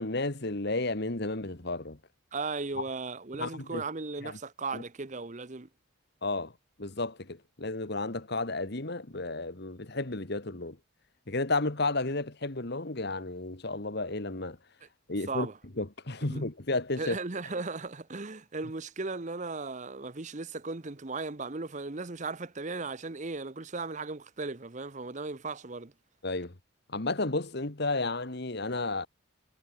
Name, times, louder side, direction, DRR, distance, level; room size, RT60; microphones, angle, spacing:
voice 1, 0.0-2.0 3.4-3.8 4.2-4.4 4.7-4.8 6.2-6.5 6.8-10.8 11.3-14.6 15.1-15.5 15.8-17.1 26.2-26.5 26.9-29.1, left 2 dB, 50° left, 1.7 m, -32 dB
voice 2, 2.3-5.7 14.8-14.9 15.3-15.6 16.3-16.4 17.0-25.9, right 3 dB, 35° right, 0.9 m, -36 dB
head